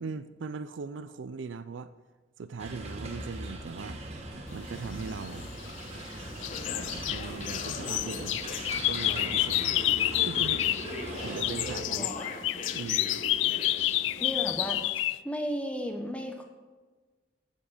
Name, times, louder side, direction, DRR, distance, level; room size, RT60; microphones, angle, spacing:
voice 1, 0.0-1.9 2.4-4.0 4.5-5.5 7.1-8.4 8.8-9.7 10.2-10.7 11.2-12.1 12.7-13.2, right 4 dB, 80° right, 12 dB, 0.4 m, -39 dB
sound 1, 2.6-11.8, right 2 dB, 35° right, 1.5 m, -41 dB
sound 2, 5.3-6.1 6.4-10.9 11.2-15.2, left 15 dB, 80° left, 0.3 m, -29 dB
sound 3, 6.2-14.8, left 2 dB, 35° left, 1.1 m, -40 dB
voice 2, 11.9-12.3 14.2-14.8 15.2-16.4, equal, 5° left, 3 dB, 1.2 m, -34 dB
15.0 x 7.4 x 5.0 m, 1.3 s
head